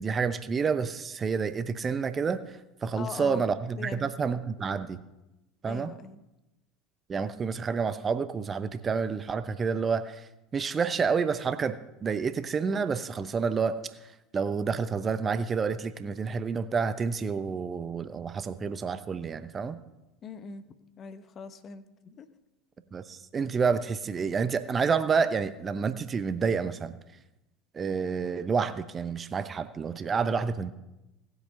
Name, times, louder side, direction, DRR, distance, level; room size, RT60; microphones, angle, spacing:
voice 1, 0.0-2.4 2.8-5.0 5.6-5.9 7.1-13.8 14.3-19.8 22.9-27.0 27.7-30.7, right 5 dB, 30° right, 12 dB, 0.8 m, -29 dB
voice 2, 2.9-3.4 3.8-4.1 5.7-6.2 20.2-20.6 21.0-22.3, left 5 dB, 35° left, 11 dB, 1.0 m, -41 dB
18.0 x 8.1 x 5.5 m, 0.95 s
figure-of-eight pair, 70°, 0 cm